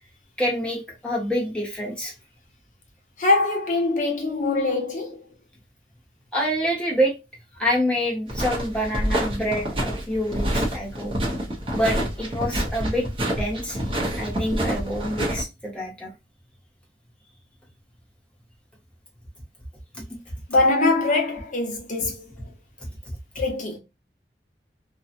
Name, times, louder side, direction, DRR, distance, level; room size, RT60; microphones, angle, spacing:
voice 1, 0.4-2.1 6.3-7.1 7.6-11.1 11.7-13.1 13.4-13.8 14.2-16.1 19.9-20.0, equal, 5° left, 0.9 m, -26 dB
voice 2, 3.2-5.3 20.5-22.2 23.3-23.8, left 2 dB, 45° left, 0.9 m, -23 dB
sound 1, 8.3-15.4, right 1 dB, 30° right, 0.8 m, -27 dB
2.8 x 2.3 x 2.4 m
head